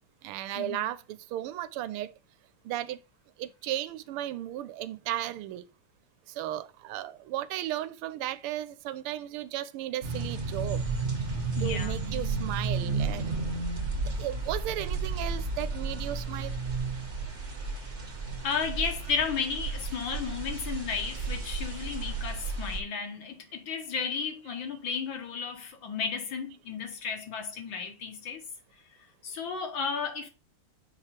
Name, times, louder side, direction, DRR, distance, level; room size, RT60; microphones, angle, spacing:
voice 1, 0.2-1.0 1.3-2.1 2.6-3.0 3.4-5.6 6.3-10.8 11.6-13.5 14.2-16.6, right 13 dB, 85° right, 1.5 m, -35 dB
sound 1, 10.0-22.8, right 3 dB, 40° right, 1.3 m, -33 dB
voice 2, 11.6-12.1 17.5-17.9 18.4-28.4 29.2-30.3, left 5 dB, 65° left, 1.8 m, -33 dB
6.1 x 5.0 x 4.3 m
omnidirectional pair, 2.4 m